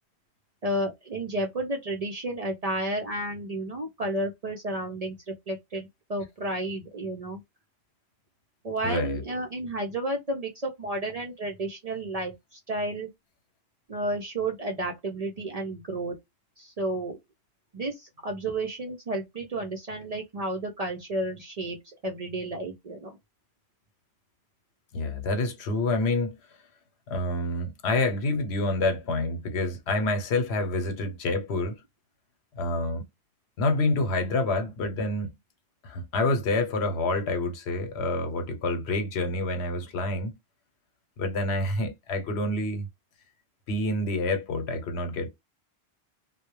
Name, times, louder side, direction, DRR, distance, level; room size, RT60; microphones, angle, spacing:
voice 1, 0.6-7.4 8.6-13.1 13.9-16.2 16.6-17.2 17.7-21.8 22.0-23.2, right 1 dB, 50° right, 0.5 m, -32 dB
voice 2, 8.8-9.2 24.9-26.4 27.1-31.8 32.6-33.0 33.6-35.3 35.8-40.3 41.2-42.9 43.7-45.3, left 2 dB, 75° left, 1.0 m, -27 dB
2.2 x 2.1 x 3.0 m
omnidirectional pair, 1.1 m